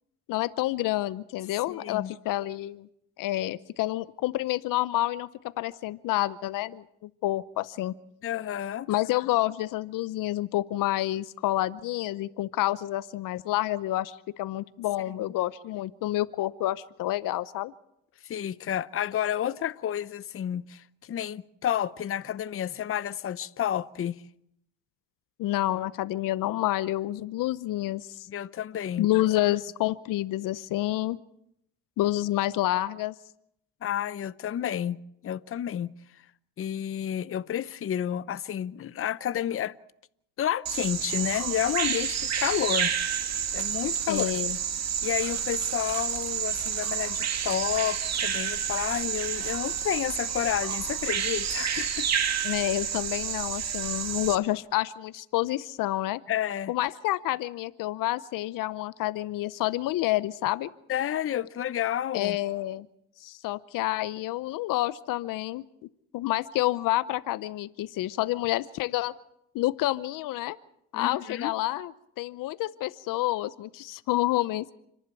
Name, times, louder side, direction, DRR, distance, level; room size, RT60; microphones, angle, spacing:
voice 1, 0.3-2.9 3.2-5.3 5.6-7.9 8.9-17.7 25.4-28.3 29.0-31.2 32.0-33.1 44.1-44.6 52.4-56.2 56.7-60.7 62.1-62.9 63.2-65.6 66.1-69.1 69.5-70.6 70.9-71.9 72.2-74.7, left 16 dB, 70° left, 0.8 m, -28 dB
voice 2, 1.7-2.1 8.2-8.9 15.2-15.3 18.2-24.2 28.3-29.1 33.8-35.0 35.2-35.9 36.6-39.7 40.4-42.9 43.5-44.3 45.0-52.1 56.3-56.7 60.9-62.4 70.9-71.5, left 10 dB, 40° left, 0.8 m, -30 dB
Bird vocalization bird call bird song, 40.7-54.4, right 8 dB, 50° right, 2.0 m, -30 dB
30.0 x 11.5 x 8.3 m
supercardioid pair, 85°, 34 cm